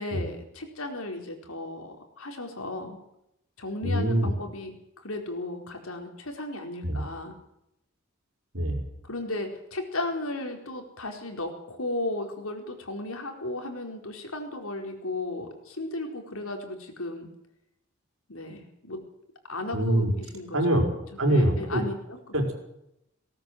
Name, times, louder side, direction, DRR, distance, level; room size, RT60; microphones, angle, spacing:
voice 1, 0.0-3.0 3.6-7.3 9.1-17.3 18.3-19.0 19.5-20.9 21.3-22.3, left 2 dB, 85° left, 3 dB, 4.5 m, -35 dB
voice 2, 3.8-4.3 6.8-7.0 8.5-8.8 19.7-20.1 20.5-20.8 21.2-21.8 22.3-22.5, right 1 dB, 80° right, 3 dB, 5.0 m, -24 dB
18.5 x 18.5 x 7.9 m, 0.82 s
head